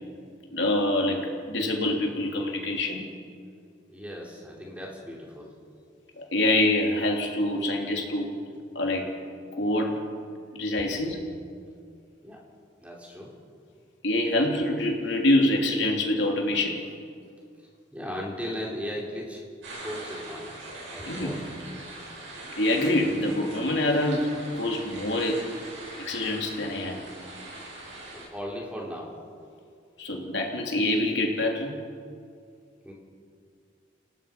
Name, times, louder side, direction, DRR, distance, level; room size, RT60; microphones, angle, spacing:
voice 1, 0.5-3.1 6.3-8.3 8.8-9.1 9.6-10.0 10.5-11.2 14.0-16.8 21.1-21.4 22.6-24.3 24.5-25.4 26.0-27.0 30.0-31.8, left 1 dB, 70° left, 0 dB, 3.5 m, -25 dB
voice 2, 3.9-5.5 10.8-11.1 12.2-12.4 12.8-13.3 17.9-19.4 19.8-20.6 20.9-21.4 28.1-29.2 32.8-32.9, equal, 5° right, -2 dB, 3.8 m, -37 dB
sound 1, 19.6-28.2, right 2 dB, 80° right, 7.3 m, -42 dB
29.5 x 18.0 x 5.4 m, 2.3 s
head